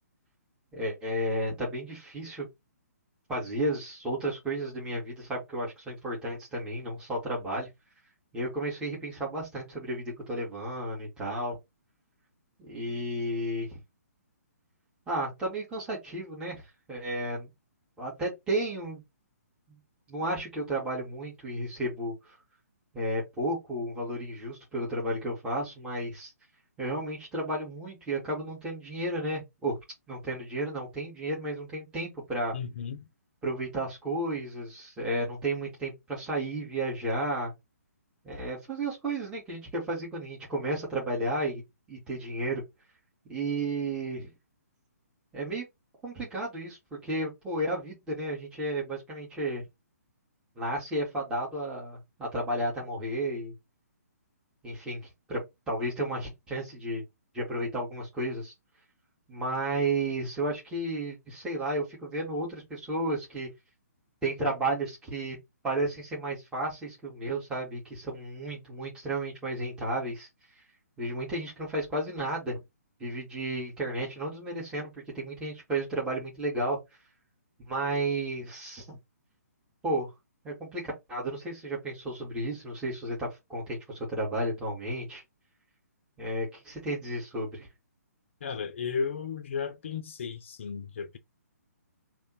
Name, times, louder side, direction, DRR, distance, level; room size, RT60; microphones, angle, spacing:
voice 1, 0.7-2.5 3.3-7.7 8.3-11.6 12.6-13.8 15.1-17.5 18.0-19.0 19.7-19.8 20.1-22.4 22.9-26.3 26.8-29.8 30.1-32.5 33.4-37.5 38.2-41.6 41.9-42.6 43.3-44.3 45.3-45.6 46.0-49.6 50.6-53.5 54.6-55.4 55.7-57.0 57.3-58.5 59.3-63.5 64.2-65.4 65.6-70.3 71.0-72.6 73.0-76.8 77.7-79.0 79.8-80.1 80.4-85.2 86.2-87.7, right 1 dB, 10° right, 1.9 m, -33 dB
voice 2, 32.5-33.1 88.4-91.2, left 6 dB, 45° left, 0.8 m, -34 dB
3.4 x 3.0 x 3.9 m
figure-of-eight pair, 130°, 9 cm